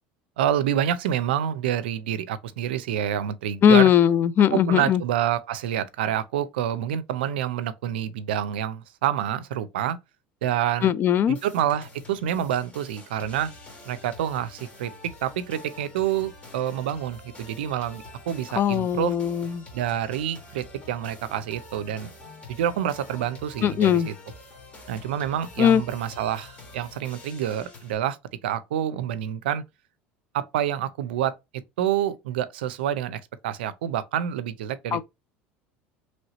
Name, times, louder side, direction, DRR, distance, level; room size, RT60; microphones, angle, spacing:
voice 1, 0.4-3.9 4.5-10.0 10.4-10.9 11.3-13.5 13.9-14.9 15.2-19.1 19.7-22.1 22.5-24.1 24.9-28.2 28.4-29.6 30.3-31.4 31.8-35.0, right 10 dB, 85° right, 0.4 m, -27 dB
voice 2, 3.6-5.0 10.8-11.4 18.5-19.6 23.6-24.1 25.6-25.8 34.9-35.0, left 9 dB, 40° left, 0.3 m, -19 dB
sound 1, 11.3-27.9, left 2 dB, 25° left, 1.5 m, -46 dB
3.1 x 2.7 x 2.9 m
supercardioid pair, 90°, 5 cm